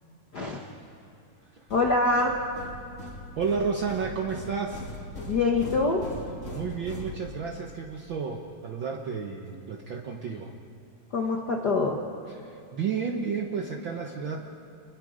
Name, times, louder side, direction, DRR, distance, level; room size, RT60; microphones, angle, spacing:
voice 1, 0.3-0.6 1.7-2.4 5.3-6.0 11.1-12.0, left 3 dB, 90° left, 1 dB, 0.8 m, -24 dB
sound 1, 1.7-7.7, left 1 dB, 25° left, 2.6 m, -40 dB
voice 2, 3.4-4.9 6.5-10.5 12.3-14.5, right 5 dB, 85° right, 1 dB, 1.0 m, -32 dB
29.0 x 22.0 x 5.1 m, 2.6 s
omnidirectional pair, 4.0 m